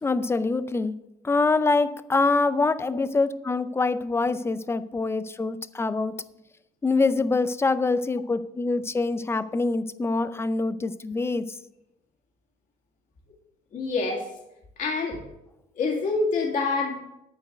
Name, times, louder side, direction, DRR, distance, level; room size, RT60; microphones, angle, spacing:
voice 1, 0.0-0.9 1.2-6.1 6.8-11.5, left 3 dB, 15° left, 13 dB, 0.5 m, -25 dB
voice 2, 13.7-14.3 14.8-15.2 15.8-17.0, left 3 dB, 50° left, 0 dB, 2.1 m, -26 dB
11.5 x 4.6 x 7.8 m, 0.87 s
cardioid pair, 110°, 17 cm